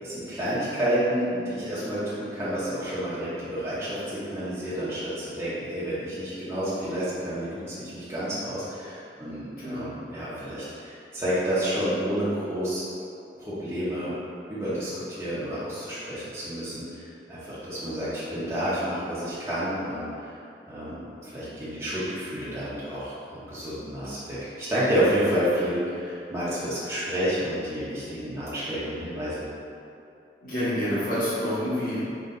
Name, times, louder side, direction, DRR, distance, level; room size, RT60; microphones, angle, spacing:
voice 1, 0.0-12.8 13.4-14.1 14.5-20.4 20.7-29.4, equal, 15° right, -12 dB, 0.8 m, -30 dB
voice 2, 9.6-9.9 30.4-32.0, equal, 50° left, -11 dB, 1.5 m, -28 dB
3.9 x 3.1 x 3.8 m, 2.6 s
head